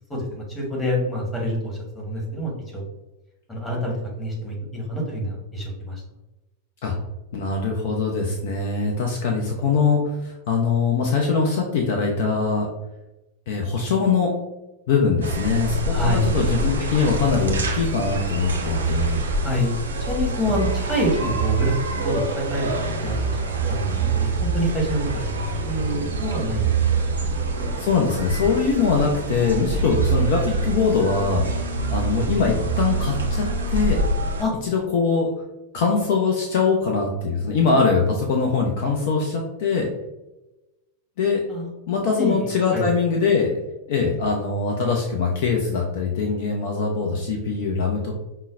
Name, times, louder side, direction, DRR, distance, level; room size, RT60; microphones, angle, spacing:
voice 1, 0.1-2.8 3.5-6.0 15.9-16.3 19.4-26.7 27.3-27.4 34.4-34.5 41.5-41.7 42.2-42.9, equal, 15° left, -2 dB, 1.2 m, -27 dB
voice 2, 7.3-12.7 13.5-14.3 14.9-19.2 27.8-34.0 34.6-35.3 35.7-39.9 41.2-41.4 41.9-43.5 43.9-48.1, left 5 dB, 55° left, 1 dB, 0.5 m, -22 dB
sound 1, 15.2-34.4, right 3 dB, 70° right, 0.6 m, -25 dB
5.4 x 2.1 x 2.4 m, 1.0 s
figure-of-eight pair, 90°, 0 cm